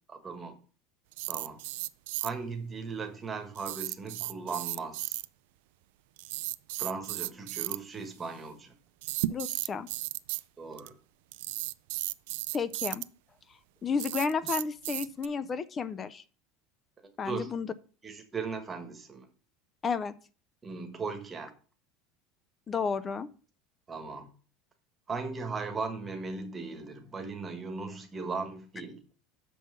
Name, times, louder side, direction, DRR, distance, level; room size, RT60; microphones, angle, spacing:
voice 1, 0.1-0.6 1.3-1.6 2.2-5.2 6.8-8.7 10.6-10.9 17.3-17.5 18.0-19.3 20.6-21.5 23.9-24.3 25.1-29.0, right 4 dB, 15° right, 5 dB, 1.2 m, -37 dB
sound 1, 1.1-2.3 3.6-5.2 6.2-7.8 9.0-10.4 10.8-10.9 11.3-13.0 14.0-15.3, right 18 dB, 75° right, 0.3 m, -34 dB
voice 2, 9.3-9.9 12.5-13.0 13.8-16.2 17.2-17.7 19.8-20.1 22.7-23.3, left 5 dB, 20° left, 17 dB, 0.4 m, -32 dB
6.7 x 5.4 x 6.7 m, 0.39 s
cardioid pair, 170°, 0 cm